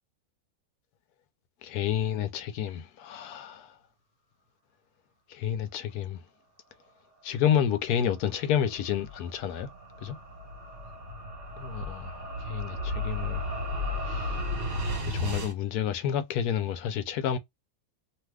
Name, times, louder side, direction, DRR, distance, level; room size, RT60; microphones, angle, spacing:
voice 1, 1.6-3.8 5.3-6.2 7.2-9.7 10.0-10.2 11.6-13.4 14.1-14.4 15.0-17.4, left 9 dB, 85° left, 1.2 m, -30 dB
sound 1, 7.7-15.5, left 1 dB, 55° right, 1.4 m, -34 dB
2.9 x 2.3 x 3.3 m
omnidirectional pair, 1.6 m